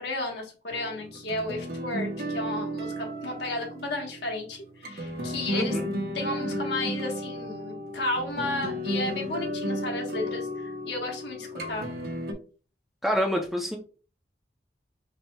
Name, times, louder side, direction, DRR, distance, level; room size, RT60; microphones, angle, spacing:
voice 1, 0.0-5.8 6.1-11.9, left 2 dB, 70° left, 1 dB, 1.2 m, -33 dB
sound 1, 0.7-12.3, equal, 55° right, 0.7 m, -34 dB
voice 2, 5.5-5.8 13.0-13.8, equal, ahead, 2 dB, 0.5 m, -27 dB
5.7 x 2.9 x 2.2 m, 0.37 s
head